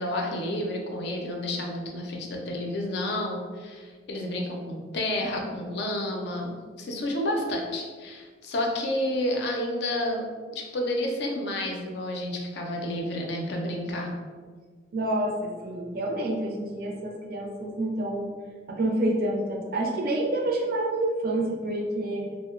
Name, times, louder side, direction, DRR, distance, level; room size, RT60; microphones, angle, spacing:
voice 1, 0.0-6.5 6.8-10.3 10.5-14.1, left 1 dB, 65° left, 1 dB, 0.4 m, -30 dB
voice 2, 14.9-18.3 18.7-22.3, right 1 dB, 55° right, 0 dB, 0.4 m, -28 dB
2.7 x 2.0 x 2.4 m, 1.5 s
head